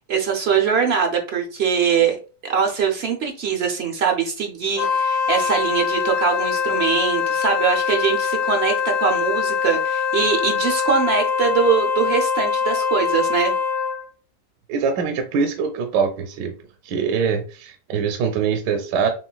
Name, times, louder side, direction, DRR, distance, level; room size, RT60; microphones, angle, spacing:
voice 1, 0.1-2.2 2.4-13.5, right 6 dB, 65° right, 3 dB, 0.6 m, -22 dB
Wind instrument woodwind instrument, 4.7-14.0, left 6 dB, 70° left, 1.5 m, -23 dB
voice 2, 14.7-16.6 16.8-19.1, right 6 dB, 80° right, 5 dB, 1.2 m, -23 dB
6.9 x 2.3 x 2.3 m, 0.36 s
omnidirectional pair, 1.9 m